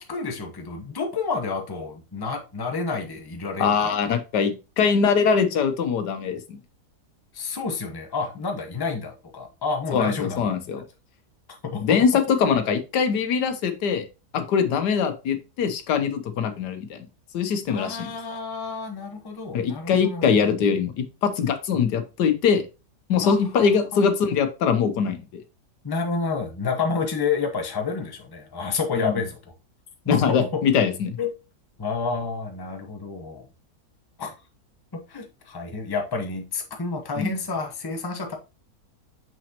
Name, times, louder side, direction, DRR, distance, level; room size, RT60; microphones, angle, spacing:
voice 1, 0.0-3.9 7.3-10.6 11.6-12.0 17.7-20.4 23.2-23.7 25.8-29.4 30.0-30.4 31.2-31.3 31.8-33.5 34.2-34.3 35.1-38.3, left 4 dB, 20° left, 0.8 m, -29 dB
voice 2, 3.6-6.6 9.9-10.8 11.8-14.0 14.3-17.1 17.3-18.1 19.5-22.6 23.1-25.4 28.9-29.2 30.1-31.2 37.2-37.4, left 6 dB, 85° left, 1.4 m, -22 dB
6.1 x 5.9 x 2.9 m
omnidirectional pair, 1.8 m